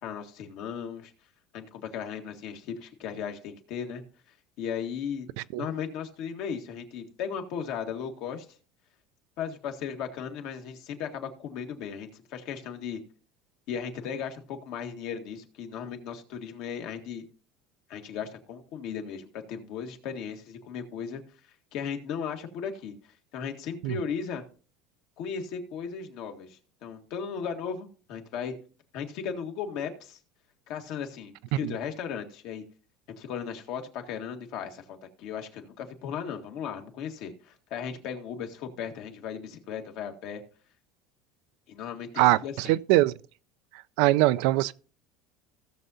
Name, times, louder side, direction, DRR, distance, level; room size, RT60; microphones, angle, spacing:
voice 1, 0.0-1.1 1.5-4.0 4.6-5.3 5.6-8.5 9.4-13.0 13.7-17.2 17.9-21.2 21.7-22.9 23.3-24.4 25.2-28.5 28.9-30.2 30.7-32.6 33.2-40.4 41.7-42.8, left 7 dB, 60° left, 1.6 m, -36 dB
voice 2, 42.2-43.1 44.0-44.7, right 17 dB, 70° right, 0.4 m, -22 dB
16.5 x 6.7 x 2.7 m
cardioid pair, 135°, 0 cm